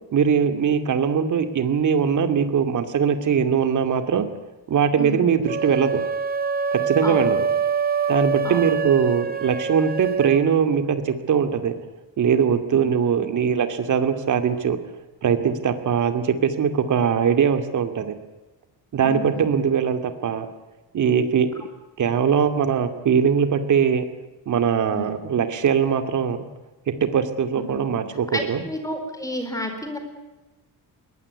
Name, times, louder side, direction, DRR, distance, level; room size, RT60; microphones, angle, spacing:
voice 1, 0.1-4.3 4.7-6.0 6.7-7.5 8.1-11.8 12.2-14.8 15.2-18.1 18.9-20.5 20.9-21.5 22.0-24.1 24.5-26.4 27.0-28.6, right 7 dB, 50° right, 9 dB, 2.4 m, -21 dB
voice 2, 5.0-5.3 7.0-7.3 8.4-8.7 13.2-13.3 19.0-19.5 24.9-25.1 27.7-27.8 28.3-30.0, equal, 10° left, 6 dB, 4.4 m, -31 dB
sound 1, 5.5-10.4, right 5 dB, 25° right, 1.5 m, -25 dB
22.0 x 19.5 x 9.6 m, 1.1 s
cardioid pair, 175°, 39 cm